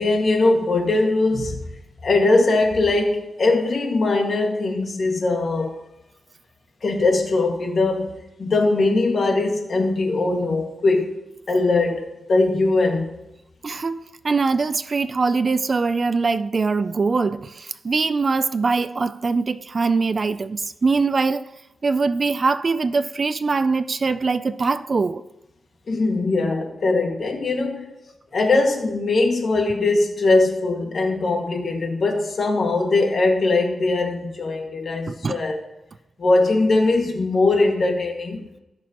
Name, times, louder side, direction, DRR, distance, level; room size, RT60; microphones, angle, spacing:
voice 1, 0.0-1.6 2.0-5.7 6.8-11.2 11.5-13.1 25.9-27.8 28.3-35.6 36.2-38.5, left 2 dB, 50° left, 1.7 m, -21 dB
voice 2, 13.6-21.4 21.8-25.2 35.1-35.4, right 4 dB, 40° right, 0.3 m, -22 dB
16.5 x 6.3 x 2.9 m
wide cardioid pair, 130°, 0 cm